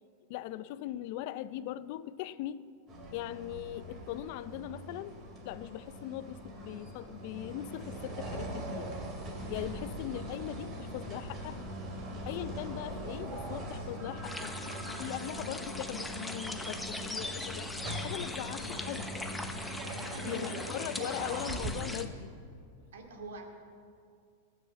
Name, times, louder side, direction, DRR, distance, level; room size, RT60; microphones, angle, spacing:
voice 1, 0.3-2.6 3.1-5.1 5.4-8.9 9.5-11.7 12.2-14.6 15.0-17.7 18.0-19.3 19.8-19.9 20.2-22.3, left 13 dB, 55° left, 15 dB, 0.5 m, -40 dB
sound 1, 2.9-21.7, right 1 dB, 35° right, 3.0 m, -41 dB
sound 2, 6.5-19.6, left 4 dB, 40° left, 1.7 m, -53 dB
sound 3, 14.2-22.0, left 2 dB, 5° left, 0.9 m, -41 dB
voice 2, 20.1-21.5 21.8-22.0 22.9-23.5, right 3 dB, 80° right, 2 dB, 2.4 m, -45 dB
19.5 x 6.6 x 7.0 m, 2.4 s
hypercardioid pair, 125°, 0 cm